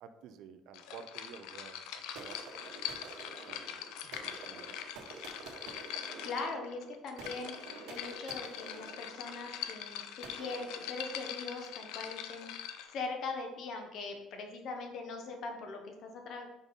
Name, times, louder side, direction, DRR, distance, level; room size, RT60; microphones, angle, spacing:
voice 1, 0.0-2.4 2.7-4.7, right 7 dB, 60° right, 9 dB, 0.6 m, -53 dB
sound 1, 0.7-13.0, left 9 dB, 80° left, 0.5 m, -43 dB
sound 2, 2.1-11.8, right 4 dB, 80° right, 1.2 m, -50 dB
voice 2, 6.2-12.5 12.9-16.5, left 3 dB, 50° left, 3 dB, 1.0 m, -41 dB
5.3 x 4.7 x 4.0 m, 0.92 s
cardioid pair, 150°, 0 cm